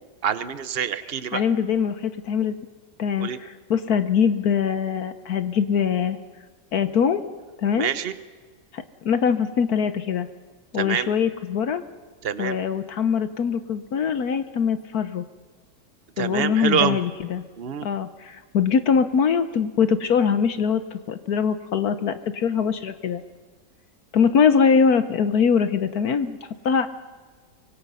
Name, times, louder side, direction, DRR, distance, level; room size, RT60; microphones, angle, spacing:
voice 1, 0.2-1.4 3.2-3.4 7.8-8.1 10.7-11.1 12.2-12.6 16.2-17.0 17.6-17.9, right 8 dB, 40° right, 13 dB, 1.0 m, -26 dB
voice 2, 1.3-2.6 3.0-6.2 6.7-7.2 7.6-7.9 8.7-10.3 10.7-11.8 12.4-15.2 16.2-17.4 17.8-23.2 24.1-26.9, left 6 dB, 65° left, 11 dB, 1.4 m, -22 dB
25.0 x 24.0 x 5.6 m, 1.5 s
omnidirectional pair, 1.8 m